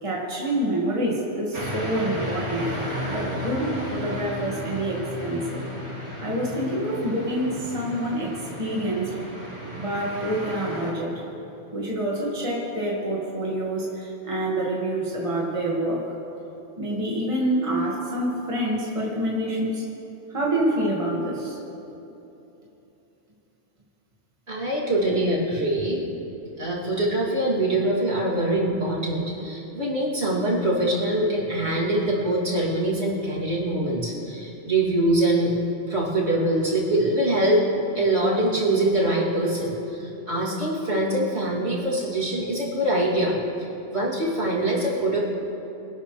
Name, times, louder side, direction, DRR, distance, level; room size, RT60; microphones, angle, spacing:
voice 1, 0.0-2.7 3.1-5.6 6.2-8.3 8.6-9.1 9.8-11.2 11.7-16.1 16.8-19.9 20.3-21.6, right 1 dB, 25° right, -4 dB, 2.0 m, -27 dB
sound 1, 1.5-10.9, equal, 85° right, 2.8 m, -33 dB
voice 2, 24.5-26.0 26.6-35.6 35.9-37.6 37.9-43.4 43.9-45.3, right 1 dB, 65° right, -6 dB, 3.1 m, -24 dB
25.0 x 12.5 x 3.3 m, 3.0 s
omnidirectional pair, 1.2 m